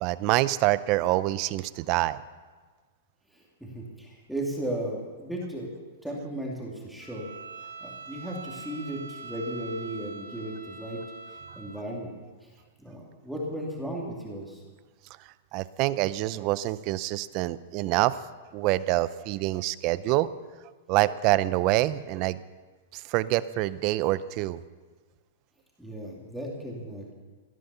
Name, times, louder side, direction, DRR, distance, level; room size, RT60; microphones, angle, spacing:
voice 1, 0.0-2.2 15.5-18.2 18.5-20.3 20.9-22.4 22.9-24.6, right 17 dB, 40° right, 16 dB, 0.6 m, -26 dB
voice 2, 3.3-5.7 6.0-7.3 7.8-11.0 11.3-12.1 12.4-12.5 12.8-14.6 25.8-27.1, right 1 dB, ahead, -3 dB, 2.5 m, -35 dB
Bowed string instrument, 7.0-11.9, right 4 dB, 75° right, 3.7 m, -43 dB
17.0 x 11.0 x 6.9 m, 1.4 s
hypercardioid pair, 145°, 0 cm